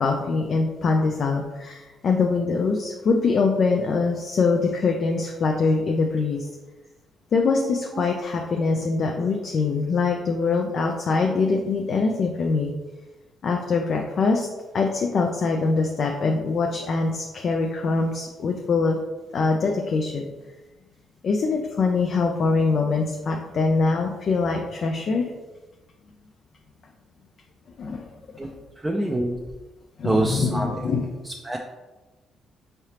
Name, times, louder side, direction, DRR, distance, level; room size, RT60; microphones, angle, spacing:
voice 1, 0.0-6.5 7.3-12.7 13.4-14.5 14.7-19.0 19.3-20.3 21.2-25.3 27.8-28.1 28.4-28.5 30.0-31.1, left 4 dB, 55° left, 1 dB, 0.4 m, -23 dB
voice 2, 28.8-29.4 30.0-30.7 31.3-31.6, right 1 dB, 15° right, 0 dB, 0.4 m, -25 dB
4.7 x 3.3 x 2.8 m, 1.2 s
cardioid pair, 90°, 0 cm